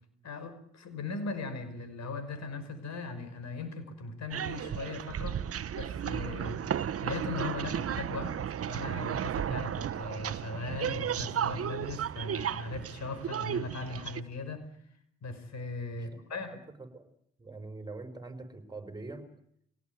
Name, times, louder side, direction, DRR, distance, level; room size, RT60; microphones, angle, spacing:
voice 1, 0.2-5.4 5.8-6.6 7.0-8.3 8.7-14.6 15.2-16.6, left 3 dB, 65° left, 10 dB, 5.6 m, -38 dB
sound 1, 4.3-14.2, right 9 dB, 50° right, 1.0 m, -34 dB
voice 2, 15.9-17.1 17.4-19.3, right 3 dB, 15° right, 8 dB, 5.9 m, -44 dB
24.0 x 18.0 x 9.6 m, 0.70 s
supercardioid pair, 65°, 30 cm